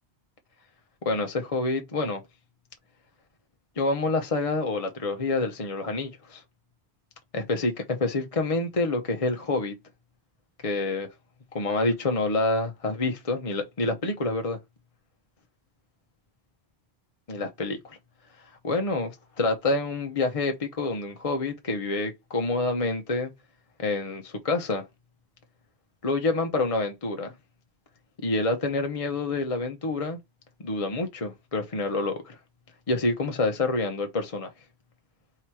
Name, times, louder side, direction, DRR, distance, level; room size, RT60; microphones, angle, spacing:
voice 1, 1.0-2.2 3.8-6.4 7.3-9.7 10.6-11.1 11.5-14.6 17.3-18.0 18.4-23.3 23.8-24.9 26.0-27.3 28.2-30.2 30.6-32.4 32.9-34.5, left 2 dB, 40° left, 0.7 m, -27 dB
3.7 x 3.0 x 4.6 m
omnidirectional pair, 1.1 m